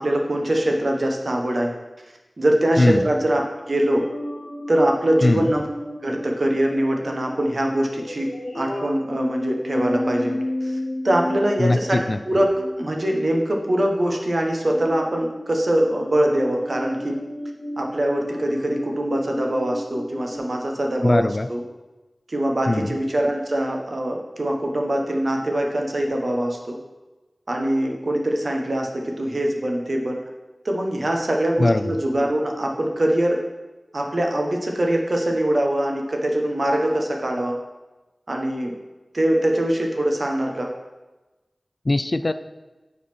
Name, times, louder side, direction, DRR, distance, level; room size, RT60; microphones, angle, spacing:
voice 1, 0.0-1.7 2.4-4.1 4.7-5.7 6.0-10.8 11.0-12.5 12.8-17.2 17.8-21.6 22.3-26.8 27.5-30.2 30.6-33.4 33.9-37.6 38.3-38.7 39.1-40.7, right 1 dB, 60° right, 1 dB, 1.2 m, -23 dB
sound 1, 3.9-13.3 14.0-14.4 14.7-20.4, left 1 dB, 80° left, 1.3 m, -32 dB
voice 2, 11.6-12.2 21.0-21.5 22.7-22.9 31.6-31.8 41.9-42.3, left 2 dB, 45° left, 11 dB, 0.3 m, -20 dB
7.4 x 4.2 x 6.0 m, 1.1 s
wide cardioid pair, 55°, 0 cm